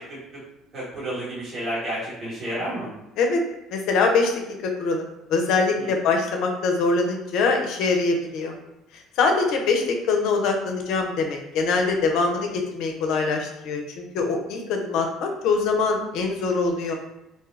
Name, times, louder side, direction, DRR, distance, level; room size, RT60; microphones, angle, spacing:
voice 1, 0.7-2.9 5.7-5.9, right 1 dB, 45° right, -9 dB, 1.3 m, -30 dB
voice 2, 3.7-5.0 5.3-8.5 8.9-16.9, left 4 dB, 70° left, 3 dB, 0.5 m, -23 dB
2.7 x 2.3 x 3.1 m, 0.92 s
hypercardioid pair, 70°, 0 cm